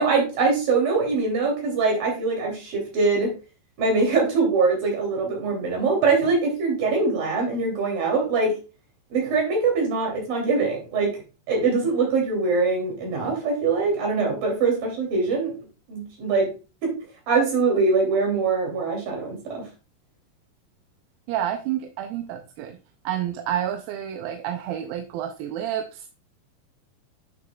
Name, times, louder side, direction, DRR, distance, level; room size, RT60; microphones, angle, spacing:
voice 1, 0.0-3.3 3.8-8.5 9.1-11.1 11.5-15.5 15.9-16.5 16.8-16.9 17.3-19.6, right 4 dB, 75° right, 1 dB, 4.6 m, -23 dB
voice 2, 21.3-22.8 23.1-26.1, right 10 dB, 90° right, 6 dB, 2.5 m, -29 dB
8.9 x 6.5 x 2.3 m, 0.31 s
omnidirectional pair, 4.1 m